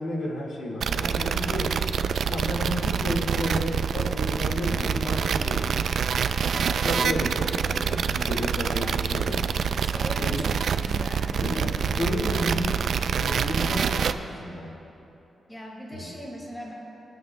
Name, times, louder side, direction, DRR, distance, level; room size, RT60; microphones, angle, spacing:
voice 1, 0.0-5.9 6.5-9.5 9.8-10.4 11.3-14.7 15.9-16.0, left 1 dB, 85° left, -1 dB, 1.9 m, -32 dB
sound 1, 0.8-14.1, right 7 dB, 70° right, 0.4 m, -26 dB
voice 2, 8.8-9.2 9.8-11.3 15.5-16.7, equal, 15° left, -2 dB, 2.2 m, -39 dB
28.0 x 9.4 x 2.2 m, 2.9 s
wide cardioid pair, 125°, 0 cm